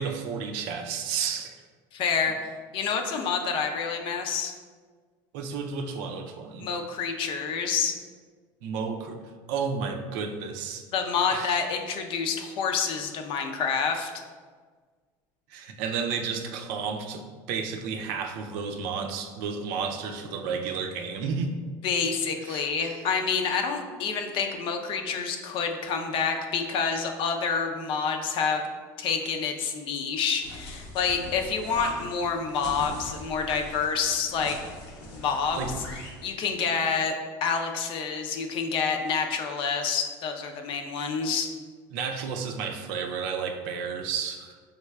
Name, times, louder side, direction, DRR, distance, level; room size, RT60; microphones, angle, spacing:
voice 1, 0.0-1.5 5.3-6.7 8.6-9.2 9.5-10.8 11.3-11.5 15.5-21.5 22.4-22.7 35.5-35.7 41.9-44.6, right 6 dB, 75° right, 5 dB, 0.5 m, -32 dB
voice 2, 1.9-2.3 2.7-4.5 6.6-7.9 10.9-14.1 21.8-28.7 29.0-34.6 35.1-35.7 36.2-37.1 37.4-41.5, left 5 dB, 55° left, 4 dB, 0.6 m, -28 dB
sound 1, 30.4-36.2, left 1 dB, 90° left, 1.0 m, -40 dB
5.5 x 3.2 x 2.3 m, 1.5 s
supercardioid pair, 110°, 10 cm